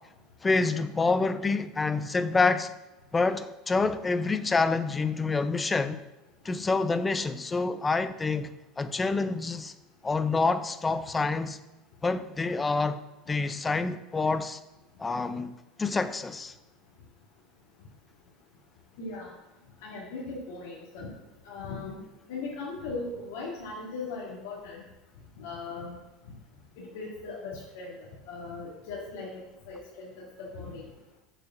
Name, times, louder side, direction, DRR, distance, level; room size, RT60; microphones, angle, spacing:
voice 1, 0.4-2.7 3.1-6.0 6.4-9.7 10.0-11.6 12.0-13.0 13.3-14.6 15.0-15.5 15.8-16.5, left 3 dB, 15° left, 0.4 m, -27 dB
voice 2, 19.0-19.3 19.8-21.1 21.4-22.0 22.3-24.8 25.4-25.9 26.8-27.9 28.3-29.3 29.7-30.8, left 3 dB, 80° left, 1.9 m, -38 dB
6.6 x 4.7 x 5.9 m
supercardioid pair, 125°, 0 cm